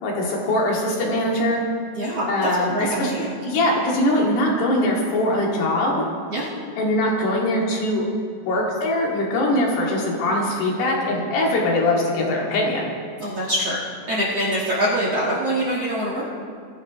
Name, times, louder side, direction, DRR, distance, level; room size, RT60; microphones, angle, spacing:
voice 1, 0.0-1.6 2.3-3.1 3.4-5.9 6.8-8.0 8.4-12.9, left 1 dB, 65° left, -2 dB, 4.2 m, -22 dB
voice 2, 1.9-3.3 6.3-6.5 13.2-16.2, equal, 60° right, -6 dB, 1.7 m, -24 dB
21.5 x 14.5 x 3.1 m, 2.2 s
omnidirectional pair, 5.3 m